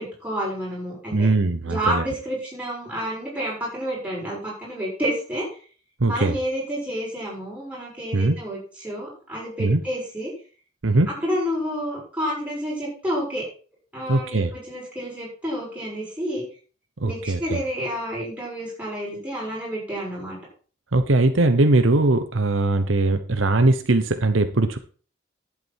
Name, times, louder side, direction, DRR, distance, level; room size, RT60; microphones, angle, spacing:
voice 1, 0.0-1.3 1.7-5.5 6.0-10.3 11.1-13.4 13.9-16.4 17.0-20.4, equal, 5° right, -6 dB, 6.7 m, -29 dB
voice 2, 1.1-2.1 6.0-6.4 8.1-8.4 9.6-9.8 10.8-11.1 14.1-14.5 17.0-17.6 20.9-24.8, right 2 dB, 80° right, 9 dB, 1.0 m, -20 dB
11.0 x 8.6 x 4.5 m, 0.40 s
head